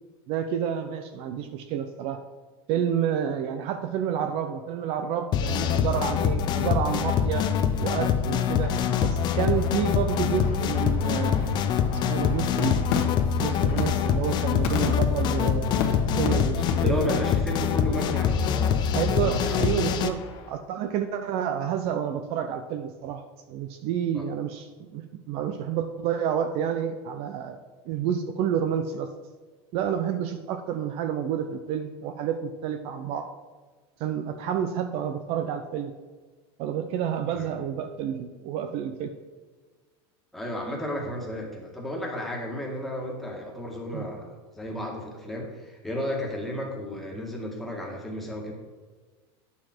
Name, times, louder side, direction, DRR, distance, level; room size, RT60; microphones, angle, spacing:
voice 1, 0.3-2.2 2.7-7.5 7.8-8.7 9.0-13.0 13.4-17.2 18.9-20.2 20.5-23.2 23.5-27.6 27.9-29.1 29.7-33.3 34.0-35.9 36.6-39.1 43.9-44.1, right 8 dB, 50° right, 8 dB, 0.6 m, -29 dB
sound 1, 5.3-20.1, left 8 dB, 35° left, 0.6 m, -25 dB
sound 2, 8.5-16.3 16.7-16.8 17.0-17.3 17.7-20.5, left 5 dB, 55° left, 1.4 m, -36 dB
voice 2, 16.8-20.0 24.1-24.2 37.3-37.5 40.3-48.5, left 1 dB, ahead, -2 dB, 1.8 m, -33 dB
9.6 x 7.1 x 4.5 m, 1.4 s
supercardioid pair, 155°, 13 cm